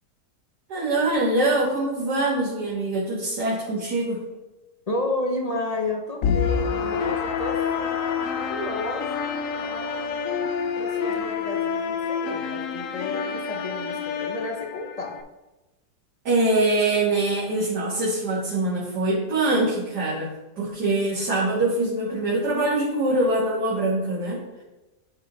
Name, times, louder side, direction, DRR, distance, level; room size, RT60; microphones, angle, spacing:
voice 1, 0.7-4.2 16.3-24.4, right 2 dB, 80° right, -7 dB, 2.1 m, -24 dB
voice 2, 4.9-10.3 10.7-15.2, left 2 dB, 35° left, 0 dB, 0.6 m, -32 dB
sound 1, 6.2-15.2, left 6 dB, 65° left, 0.9 m, -27 dB
10.0 x 3.6 x 3.9 m, 1.1 s
omnidirectional pair, 1.7 m